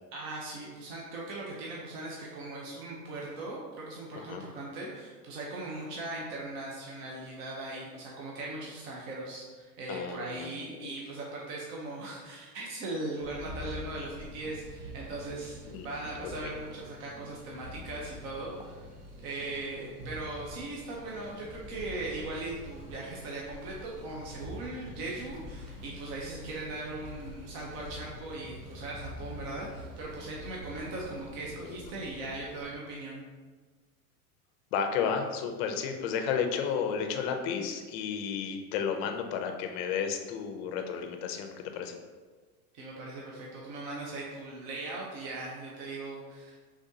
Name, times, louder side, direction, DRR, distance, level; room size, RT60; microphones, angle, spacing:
voice 1, 0.1-18.9 19.2-33.2 42.7-46.6, right 2 dB, 40° right, -3 dB, 0.7 m, -39 dB
voice 2, 9.9-10.9 15.7-15.9 31.6-31.8 34.7-42.0, left 7 dB, 45° left, 5 dB, 0.5 m, -32 dB
sound 1, 13.2-32.7, equal, 20° right, 0.4 m, -46 dB
5.0 x 3.5 x 2.7 m, 1.4 s
supercardioid pair, 145°, 46 cm